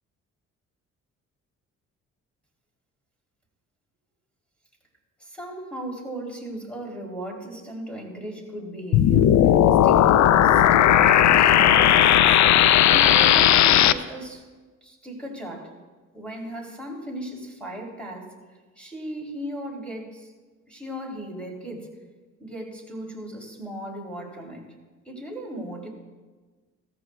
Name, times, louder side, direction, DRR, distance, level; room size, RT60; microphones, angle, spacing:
voice 1, 5.2-9.3 9.8-12.4 12.8-14.4 14.8-15.7 16.1-18.3 18.8-20.3 20.7-21.9 22.4-24.7 25.0-25.9, right 1 dB, 5° left, -1 dB, 3.3 m, -36 dB
sound 1, 8.9-13.9, left 11 dB, 70° left, 0.5 m, -16 dB
17.0 x 14.0 x 2.3 m, 1.3 s
cardioid pair, 90°, 30 cm